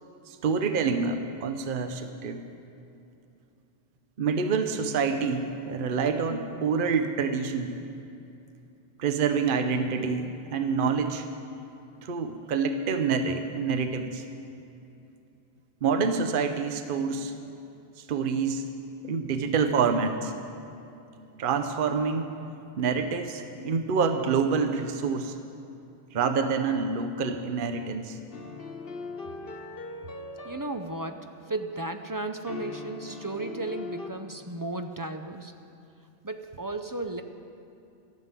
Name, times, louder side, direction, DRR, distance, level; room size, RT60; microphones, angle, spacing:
voice 1, 0.3-2.4 4.2-7.8 9.0-11.3 12.0-14.2 15.8-17.3 18.0-18.7 19.0-20.3 21.4-22.4 22.8-25.4 26.1-28.2, right 5 dB, 60° right, 7 dB, 0.9 m, -27 dB
sound 1, 28.3-31.6 32.5-34.1, left 3 dB, 65° left, 1.2 m, -40 dB
voice 2, 30.4-35.5 36.2-37.2, right 2 dB, 30° right, 7 dB, 0.4 m, -34 dB
13.5 x 7.4 x 9.6 m, 2.7 s
omnidirectional pair, 1.1 m